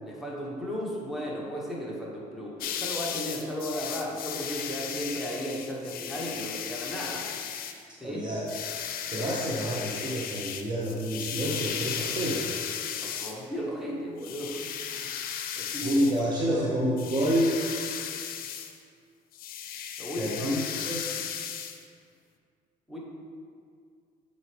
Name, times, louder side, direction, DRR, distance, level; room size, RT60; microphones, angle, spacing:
voice 1, 0.0-7.3 7.9-8.5 13.0-15.9 16.4-16.7 20.0-20.8 22.9-23.0, equal, ahead, -4 dB, 1.2 m, -35 dB
sound 1, 2.6-7.8 8.5-13.4 14.2-16.2 16.9-18.7 19.3-21.8, left 8 dB, 60° left, 0.5 m, -35 dB
voice 2, 8.0-8.5 9.1-12.5 15.8-17.6 20.2-21.1, equal, 25° right, -5 dB, 0.9 m, -28 dB
7.9 x 3.9 x 3.4 m, 2.2 s
cardioid pair, 110°, 17 cm